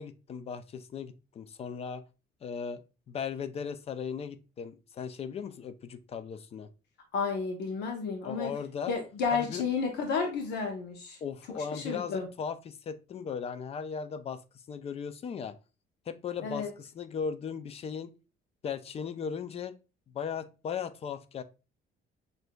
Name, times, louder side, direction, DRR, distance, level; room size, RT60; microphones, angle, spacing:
voice 1, 0.0-2.0 2.4-2.8 3.1-6.7 8.2-8.9 9.3-9.6 11.2-14.4 14.7-15.6 16.1-18.1 18.6-19.7 20.1-21.4, left 6 dB, 35° left, 13 dB, 0.4 m, -37 dB
voice 2, 7.1-8.5 8.9-11.2 11.7-12.3 16.4-16.7, left 5 dB, 85° left, 3 dB, 0.8 m, -31 dB
6.1 x 2.6 x 2.2 m, 0.32 s
cardioid pair, 110°, 17 cm